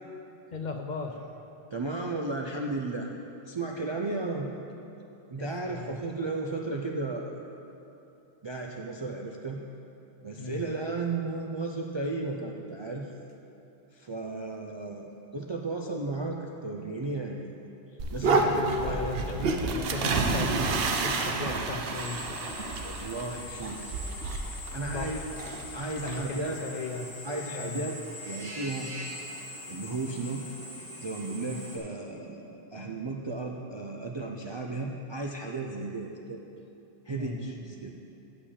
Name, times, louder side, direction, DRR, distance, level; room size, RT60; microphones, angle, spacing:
voice 1, 0.5-1.3 5.4-6.0 10.4-10.6 18.4-22.2 24.9-25.2 26.0-27.1 27.5-27.9 28.8-28.9 31.4-31.6 37.1-37.4, left 4 dB, 55° left, 4 dB, 0.6 m, -37 dB
voice 2, 1.7-3.1 3.4-4.5 5.3-7.4 8.4-9.6 10.2-13.1 13.9-17.5 18.1-19.0 22.8-24.0 24.7-25.2 25.7-26.6 27.2-28.0 28.3-28.9 29.7-30.5 31.0-36.4 37.0-37.9, right 3 dB, 45° right, -1 dB, 0.4 m, -34 dB
sound 1, 18.0-26.2, right 3 dB, 65° right, 0.9 m, -30 dB
Drill, 21.9-31.8, left 1 dB, 20° left, 2.1 m, -42 dB
8.3 x 5.1 x 7.2 m, 2.8 s
omnidirectional pair, 1.1 m